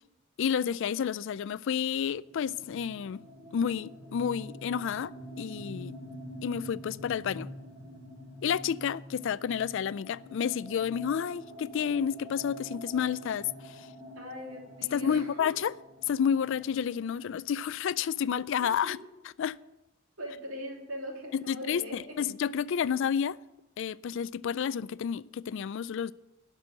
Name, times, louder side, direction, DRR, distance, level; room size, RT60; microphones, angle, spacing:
voice 1, 0.4-3.2 3.5-5.9 6.4-7.5 8.4-13.9 14.9-15.7 16.1-19.0 19.4-19.6 21.3-23.4 23.8-26.1, left 7 dB, 60° left, 0.3 m, -30 dB
sound 1, 2.2-17.8, equal, 10° right, 3.4 m, -47 dB
voice 2, 14.1-15.5 18.6-19.0 20.2-22.2, equal, 75° right, 3.0 m, -41 dB
12.0 x 6.2 x 9.0 m
head